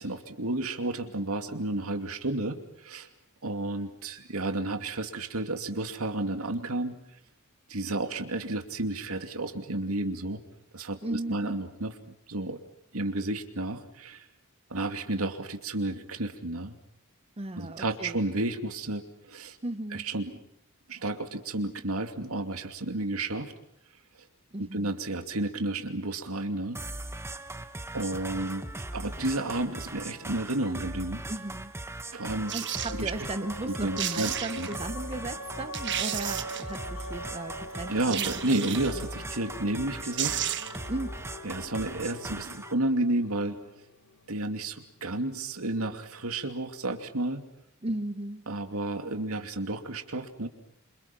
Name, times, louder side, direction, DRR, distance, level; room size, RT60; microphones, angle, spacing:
voice 1, 0.0-3.1 3.4-7.0 7.7-10.4 10.7-11.9 12.3-12.6 12.9-14.2 14.7-16.7 17.6-19.6 19.9-20.3 20.9-23.5 24.6-26.8 27.9-28.6 28.9-31.2 32.1-32.5 32.9-33.1 33.6-34.7 37.9-40.5 41.4-43.6 44.3-47.5 48.5-50.5, right 2 dB, 75° right, 6 dB, 2.6 m, -31 dB
voice 2, 11.0-11.5 17.4-18.2 19.6-20.1 24.5-24.9 31.3-31.7 32.5-38.4 40.9-41.1 47.8-48.5, right 2 dB, 30° right, 9 dB, 0.9 m, -36 dB
sound 1, 26.7-42.7, right 2 dB, 10° right, 1.3 m, -39 dB
sound 2, 32.4-45.3, left 1 dB, 70° left, 1.5 m, -43 dB
sound 3, 32.5-33.0 33.7-33.8 34.0-34.8 35.3-35.4 35.7-36.8 38.1-39.0 39.8-39.9 40.1-40.9 41.2-41.3, right 11 dB, 55° right, 1.3 m, -32 dB
27.5 x 27.5 x 6.0 m, 0.76 s
head